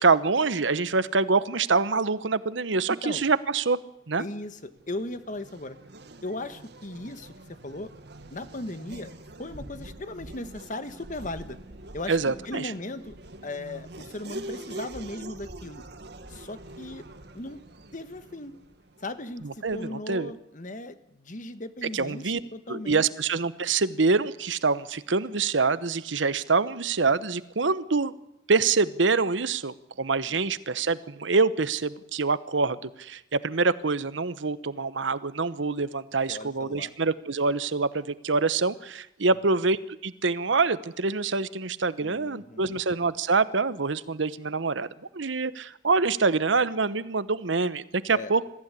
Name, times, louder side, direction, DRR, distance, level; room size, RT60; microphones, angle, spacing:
voice 1, 0.0-3.8 4.1-4.2 12.1-12.7 19.4-20.3 21.9-22.4 22.7-28.1 28.5-44.9 45.1-48.4, right 4 dB, 80° right, 15 dB, 1.0 m, -25 dB
voice 2, 2.9-3.2 4.2-5.8 6.2-7.3 7.6-7.9 8.3-9.1 9.4-11.6 11.9-12.2 12.4-13.1 13.4-15.8 16.3-17.0 17.3-17.6 17.9-18.5 19.0-23.1 36.3-36.9 39.3-39.4 42.0-42.8 48.1-48.3, left 2 dB, 45° left, 11 dB, 1.4 m, -37 dB
Race car auto racing / Accelerating revving vroom, 4.5-20.0, right 1 dB, 60° right, 1.9 m, -44 dB
22.5 x 15.0 x 9.9 m, 0.83 s
head